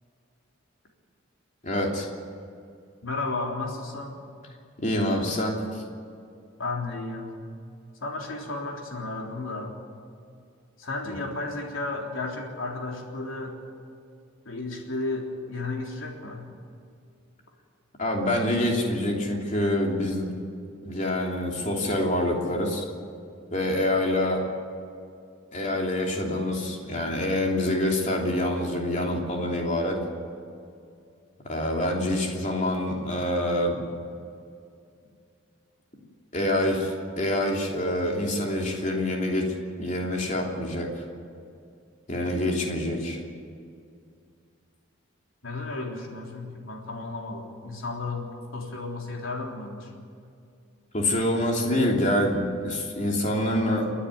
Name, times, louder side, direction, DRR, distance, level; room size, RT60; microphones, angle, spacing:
voice 1, 1.6-2.1 4.8-5.8 11.0-11.2 18.0-20.3 20.8-22.8 23.5-24.4 25.5-30.0 31.4-33.8 36.3-39.5 39.8-41.0 42.1-43.2 50.9-53.9, left 1 dB, 35° left, 0 dB, 3.1 m, -26 dB
voice 2, 3.0-4.2 6.6-7.3 8.0-9.7 10.8-13.6 14.5-16.4 45.4-49.9, left 2 dB, 75° left, 0 dB, 3.7 m, -33 dB
29.5 x 10.0 x 9.7 m, 2.4 s
head